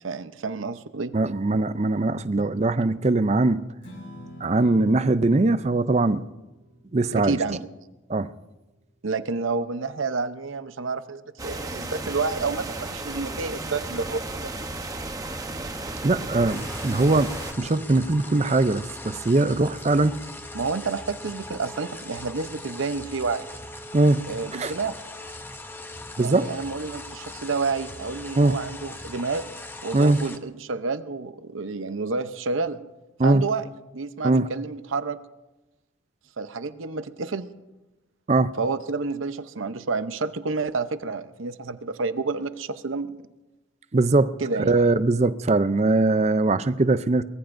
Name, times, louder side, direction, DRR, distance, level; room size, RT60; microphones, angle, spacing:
voice 1, 0.0-1.1 2.4-2.5 7.1-7.6 9.0-14.5 20.5-23.5 24.3-25.0 26.2-29.5 29.8-32.8 33.2-33.7 33.9-35.2 36.4-37.5 38.6-43.1 44.4-44.8, right 4 dB, 80° right, 0.8 m, -29 dB
voice 2, 1.1-3.6 4.4-6.3 6.9-7.4 8.1-8.3 16.0-20.2 23.9-24.2 24.6-24.7 26.2-26.5 28.4-28.6 29.9-30.3 33.2-33.4 34.2-34.5 38.3-38.5 43.9-44.4 44.7-47.2, right 2 dB, 35° right, 0.5 m, -21 dB
Strum, 3.8-10.1, equal, 75° left, 5.1 m, -49 dB
sound 1, 11.4-17.5, right 2 dB, 20° right, 0.8 m, -34 dB
sound 2, 16.5-30.4, left 2 dB, 10° left, 0.7 m, -40 dB
23.5 x 20.0 x 2.6 m
head